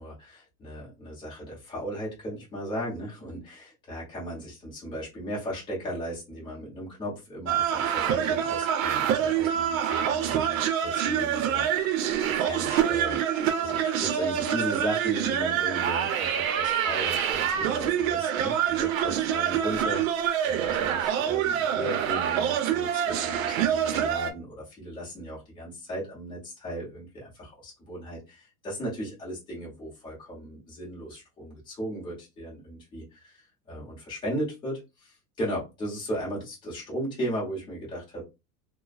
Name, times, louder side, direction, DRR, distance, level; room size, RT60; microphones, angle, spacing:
voice 1, 0.0-11.9 12.2-38.2, right 1 dB, 10° left, -6 dB, 0.9 m, -36 dB
sound 1, 7.5-24.3, right 9 dB, 75° right, 0.7 m, -26 dB
3.0 x 2.1 x 2.4 m, 0.25 s
supercardioid pair, 175°, 42 cm